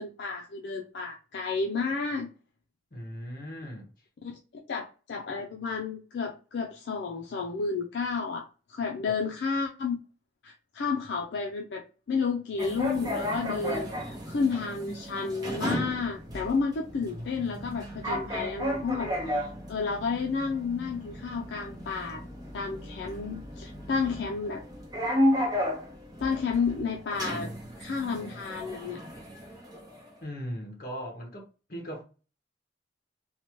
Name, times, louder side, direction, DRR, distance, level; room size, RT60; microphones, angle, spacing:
voice 1, 0.0-2.3 4.2-8.4 8.7-10.0 10.4-22.2 22.5-24.6 26.2-27.5 27.8-29.0, left 5 dB, 70° left, 0.4 m, -31 dB
voice 2, 2.9-3.9 9.0-9.2 30.2-32.0, equal, 50° left, 1.0 m, -38 dB
sound 1, 12.6-30.1, equal, 20° right, 0.6 m, -33 dB
3.2 x 2.1 x 2.9 m
head